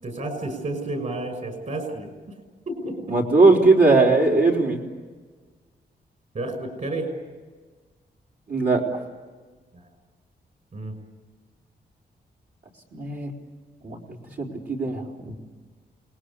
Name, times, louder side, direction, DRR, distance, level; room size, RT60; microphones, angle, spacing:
voice 1, 0.0-2.4 2.7-3.0 6.3-7.1 9.7-9.8 10.7-11.0, right 2 dB, 50° right, 7 dB, 6.2 m, -31 dB
voice 2, 3.1-4.8 8.5-8.8 12.9-13.3 13.8-14.0 14.4-15.3, right 3 dB, 70° right, 0 dB, 4.2 m, -19 dB
28.5 x 20.5 x 8.5 m, 1.4 s
wide cardioid pair, 135°, 17 cm